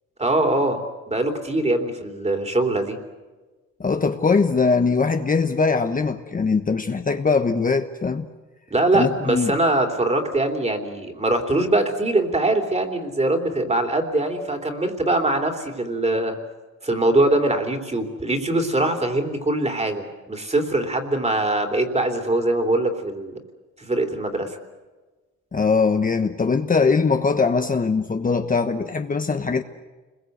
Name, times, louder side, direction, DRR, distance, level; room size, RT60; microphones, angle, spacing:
voice 1, 0.2-0.8 1.1-3.0 8.7-16.4 16.8-23.3 23.8-24.6, right 2 dB, 20° right, 3.3 m, -22 dB
voice 2, 3.8-8.3 8.9-9.5 25.5-29.6, left 4 dB, 30° left, 1.1 m, -21 dB
29.5 x 21.5 x 8.0 m
cardioid pair, 125°, 30 cm